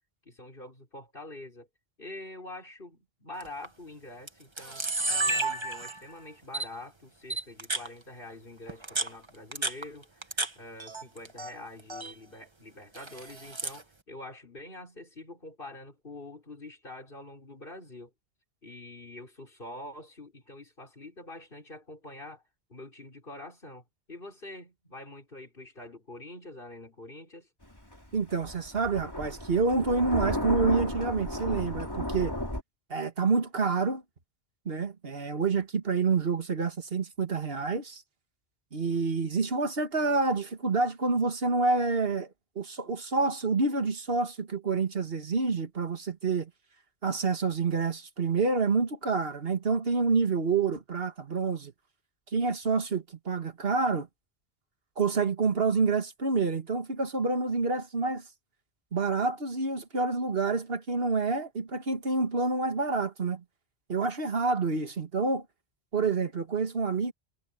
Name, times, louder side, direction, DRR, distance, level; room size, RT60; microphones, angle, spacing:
voice 1, 0.3-1.7 2.0-18.1 18.6-22.4 22.7-27.5, left 2 dB, 55° left, 5.7 m, -45 dB
Camera, 3.4-3.7 4.3-4.4 4.6-6.1 6.5-6.7 7.3-7.9 8.7-10.5 10.8-11.5 11.8-12.1 12.9-13.8, right 2 dB, 25° right, 1.4 m, -31 dB
Thunder, 27.6-32.6, left 1 dB, 20° left, 3.6 m, -33 dB
voice 2, 28.1-32.4 32.9-34.0 34.7-38.0 38.7-42.3 42.6-46.5 47.0-51.7 52.3-54.1 55.0-58.2 58.9-63.4 63.9-65.5 65.9-67.1, right 4 dB, 60° right, 2.0 m, -28 dB
omnidirectional pair, 1.1 m